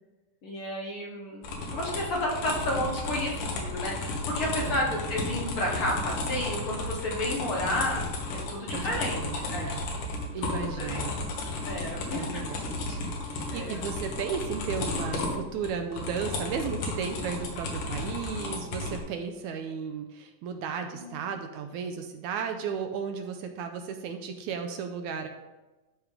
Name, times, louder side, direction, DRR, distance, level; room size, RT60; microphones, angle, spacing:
voice 1, 0.4-1.4 1.7-8.0 8.3-9.2 9.5-9.7 10.4-10.5 10.8-11.0 11.6-12.4 13.5-13.8 20.9-21.1, left 1 dB, 55° left, -2 dB, 1.7 m, -31 dB
sound 1, 1.4-19.0, left 2 dB, 85° left, 3.0 m, -33 dB
voice 2, 4.6-5.0 8.7-9.8 10.3-11.1 12.1-13.0 13.3-25.3, right 6 dB, 80° right, 6 dB, 1.9 m, -34 dB
13.0 x 4.9 x 3.7 m, 1.1 s
omnidirectional pair, 3.7 m